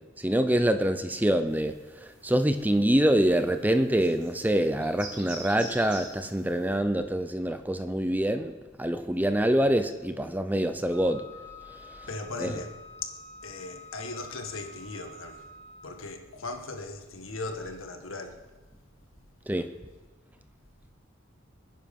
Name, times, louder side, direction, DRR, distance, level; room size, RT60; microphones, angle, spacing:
voice 1, 0.2-11.3 12.4-12.5 19.5-19.7, right 1 dB, 10° right, 0.6 m, -25 dB
sound 1, 1.5-6.7, right 1 dB, 25° right, 6.3 m, -47 dB
Wind instrument woodwind instrument, 10.9-16.1, left 2 dB, 15° left, 1.3 m, -48 dB
voice 2, 12.1-13.2 13.4-15.5 15.8-18.4, left 3 dB, 80° left, 1.7 m, -38 dB
25.5 x 9.8 x 5.4 m
head